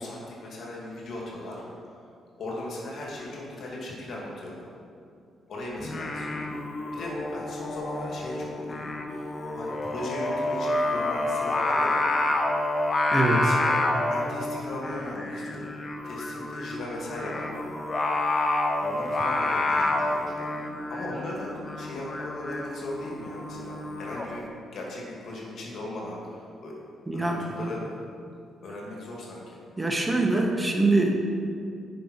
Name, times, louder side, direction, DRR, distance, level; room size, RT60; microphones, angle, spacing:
voice 1, 0.0-1.6 1.9-2.0 2.4-4.6 5.5-6.5 6.9-12.0 13.4-13.8 14.1-15.7 16.0-17.7 18.8-24.4 24.7-26.7 27.1-27.8 28.6-29.6, left 1 dB, 60° left, -3 dB, 2.1 m, -37 dB
Singing, 5.8-24.3, left 2 dB, 40° left, 1.0 m, -29 dB
voice 2, 13.1-13.4 27.1-27.4 29.8-31.1, right 2 dB, 20° right, 1 dB, 1.6 m, -23 dB
9.9 x 5.2 x 4.7 m, 2.4 s
hypercardioid pair, 45°, 0 cm